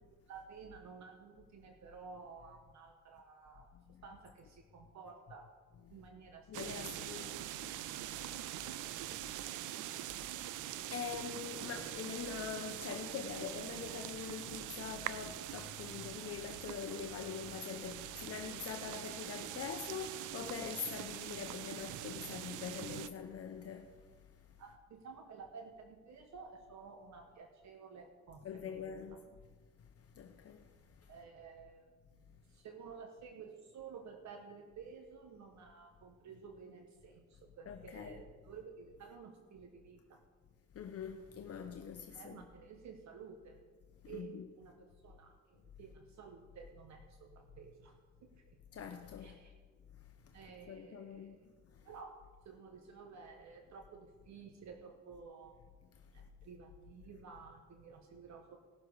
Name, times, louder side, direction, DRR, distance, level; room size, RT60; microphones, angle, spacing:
voice 1, 0.3-3.7 4.0-5.5 5.9-6.5 6.9-7.4 9.5-9.7 24.6-28.9 31.1-40.2 42.1-43.6 44.0-48.5 49.2-49.5 50.3-51.4 51.8-52.2 52.4-55.6 56.1-58.6, right 5 dB, 65° right, 1.3 m, -53 dB
voice 2, 6.5-8.1 8.7-9.1 10.9-24.0 28.4-29.2 30.1-30.7 31.0-31.1 37.7-38.2 40.7-42.4 44.1-44.4 48.7-49.3 50.3-50.4 50.7-51.4, left 7 dB, 50° left, 0.9 m, -44 dB
sound 1, 6.5-23.1, right 13 dB, 90° right, 0.5 m, -44 dB
18.5 x 6.8 x 4.8 m
cardioid pair, 90°, 30 cm